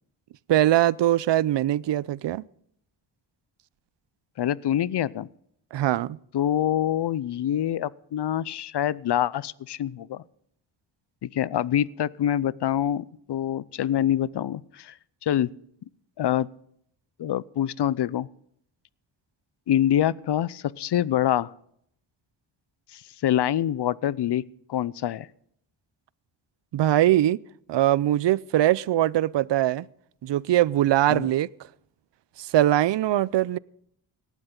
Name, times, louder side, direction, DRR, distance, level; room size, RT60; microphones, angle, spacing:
voice 1, 0.5-2.4 5.7-6.2 26.7-27.4 27.7-29.9 30.2-31.5 32.4-33.6, right 13 dB, 60° right, 0.5 m, -22 dB
voice 2, 4.4-5.3 6.3-10.2 11.2-15.0 15.2-15.5 16.2-16.5 17.2-18.3 19.7-21.5 22.9-24.4 24.7-25.3 31.1-31.3, left 11 dB, 55° left, 0.6 m, -25 dB
18.0 x 12.0 x 3.8 m
cardioid pair, 70°, 49 cm